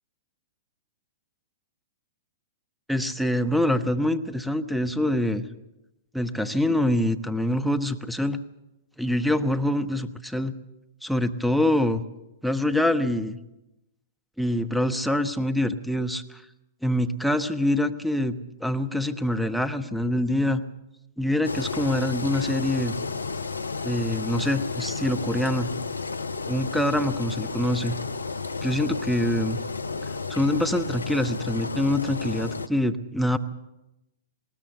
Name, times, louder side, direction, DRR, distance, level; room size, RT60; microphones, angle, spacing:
voice 1, 2.9-5.4 6.1-8.4 9.0-10.5 11.0-12.0 12.4-13.4 14.4-16.4 16.8-20.6 21.2-23.0 23.8-25.7 26.5-27.9 28.6-29.6 30.3-33.4, left 1 dB, ahead, 12 dB, 1.0 m, -25 dB
Engine, 21.4-32.7, left 4 dB, 80° left, 0.7 m, -32 dB
20.5 x 18.5 x 7.0 m, 0.94 s
figure-of-eight pair, 105°, 0 cm